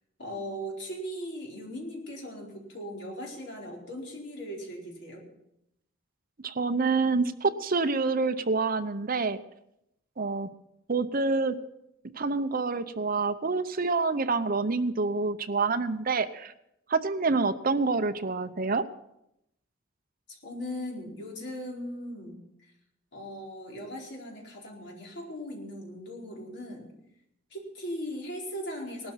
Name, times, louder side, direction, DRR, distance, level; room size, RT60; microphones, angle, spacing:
voice 1, 0.2-5.2 20.3-22.4 23.1-27.0 27.5-29.1, equal, 60° left, -2 dB, 4.5 m, -38 dB
voice 2, 6.4-9.4 10.2-10.5 10.9-11.6 12.2-16.5 16.9-18.8, right 4 dB, 45° right, 11 dB, 0.8 m, -27 dB
18.5 x 12.5 x 5.8 m, 0.81 s
head